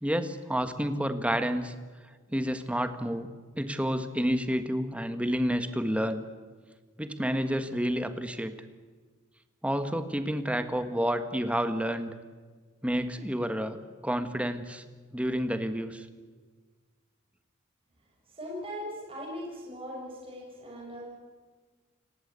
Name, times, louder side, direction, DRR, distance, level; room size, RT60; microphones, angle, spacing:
voice 1, 0.0-1.7 2.3-3.3 3.6-6.2 7.0-8.5 9.6-12.1 12.8-13.8 14.0-14.8 15.1-16.1, equal, 5° right, 9 dB, 1.6 m, -29 dB
voice 2, 18.3-21.1, equal, 30° right, -3 dB, 6.8 m, -39 dB
30.0 x 18.5 x 8.3 m, 1.5 s
head